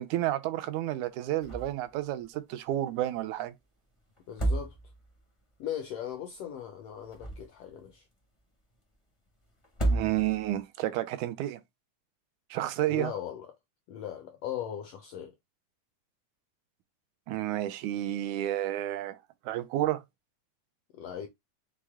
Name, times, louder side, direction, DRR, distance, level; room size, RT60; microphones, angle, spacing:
voice 1, 0.0-3.5 9.9-11.6 12.5-13.1 17.3-19.2 19.5-20.0, right 14 dB, 80° right, 1.9 m, -31 dB
sound 1, 1.4-1.9 2.2-2.3 4.2-5.2 6.9-7.8 9.6-10.6, right 2 dB, 50° left, 0.3 m, -31 dB
voice 2, 4.3-4.7 5.6-8.0 12.9-13.5 13.9-15.3 20.9-21.3, left 10 dB, 80° left, 1.4 m, -38 dB
6.2 x 2.2 x 3.5 m
omnidirectional pair, 3.5 m